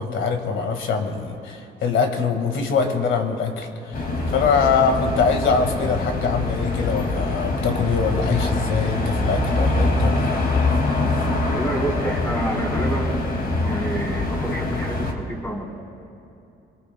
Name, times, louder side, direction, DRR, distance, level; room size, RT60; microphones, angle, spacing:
voice 1, 0.0-10.3, left 5 dB, 75° left, 4 dB, 1.8 m, -23 dB
sound 1, 3.9-15.1, left 2 dB, 50° left, 2.3 m, -24 dB
voice 2, 11.5-13.2 13.6-15.7, right 1 dB, 15° left, 0 dB, 3.1 m, -28 dB
25.0 x 22.5 x 2.3 m, 2.8 s
cardioid pair, 90°, 20 cm